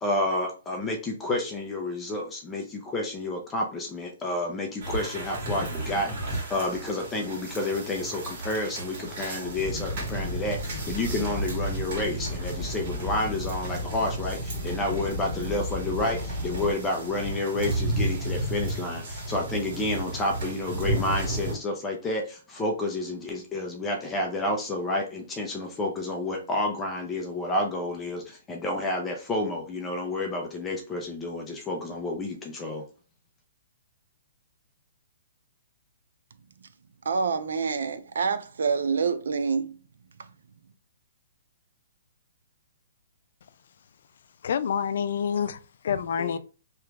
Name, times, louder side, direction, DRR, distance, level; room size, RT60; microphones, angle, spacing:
voice 1, 0.0-32.8 46.2-46.4, left 2 dB, 15° left, 0.5 m, -30 dB
sound 1, 4.8-21.6, right 1 dB, 45° right, 1.7 m, -34 dB
sound 2, 9.5-16.7, left 1 dB, 5° right, 1.2 m, -34 dB
voice 2, 37.0-39.8, right 5 dB, 80° right, 0.5 m, -27 dB
voice 3, 44.4-46.4, left 7 dB, 65° left, 0.3 m, -28 dB
3.0 x 2.3 x 3.3 m
hypercardioid pair, 155°, 0 cm